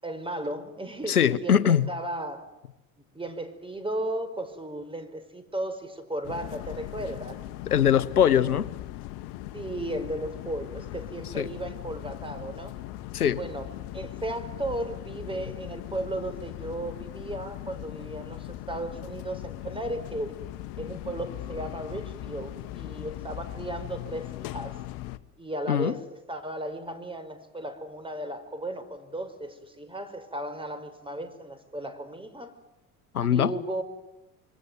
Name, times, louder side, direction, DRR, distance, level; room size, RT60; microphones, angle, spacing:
voice 1, 0.0-2.5 3.1-7.4 9.5-12.8 13.4-20.4 20.8-24.8 25.4-32.5 33.2-33.8, right 1 dB, 10° right, 10 dB, 5.0 m, -35 dB
voice 2, 1.1-1.9 7.7-8.7 11.4-11.5 13.1-13.4 25.7-26.0 33.1-33.5, left 9 dB, 85° left, 18 dB, 1.0 m, -22 dB
sound 1, 6.2-25.2, left 15 dB, 55° left, 1.3 m, -39 dB
26.5 x 24.0 x 9.3 m, 0.93 s
figure-of-eight pair, 65°, 44 cm